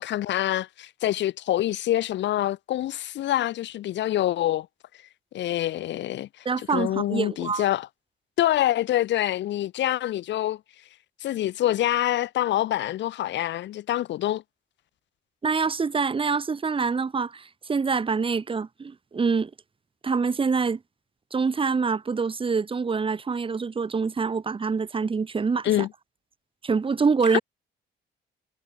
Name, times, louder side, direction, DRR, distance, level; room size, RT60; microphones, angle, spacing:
voice 1, 0.0-4.7 5.3-6.5 6.7-7.9 8.4-10.6 11.2-14.4 25.6-25.9 27.3-27.4, left 13 dB, 65° left, 0.6 m, -26 dB
voice 2, 6.4-7.6 15.4-19.5 20.0-20.8 21.3-25.7 26.6-27.4, right 5 dB, 25° right, 1.1 m, -25 dB
cardioid pair, 90°, 20 cm